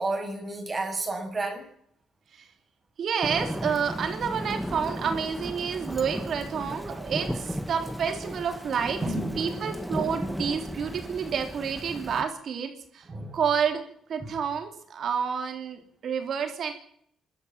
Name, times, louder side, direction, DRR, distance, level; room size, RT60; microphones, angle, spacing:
voice 1, 0.0-1.6 9.0-9.5 13.1-13.4 14.2-14.3, right 2 dB, 30° right, 2 dB, 6.9 m, -31 dB
voice 2, 3.0-9.0 9.4-13.0 13.3-13.8 14.1-16.7, right 7 dB, 60° right, 5 dB, 3.4 m, -29 dB
Thunder / Rain, 3.2-12.2, equal, ahead, 1.7 m, -35 dB
27.0 x 13.0 x 7.6 m, 0.67 s
cardioid pair, 90°, 0 cm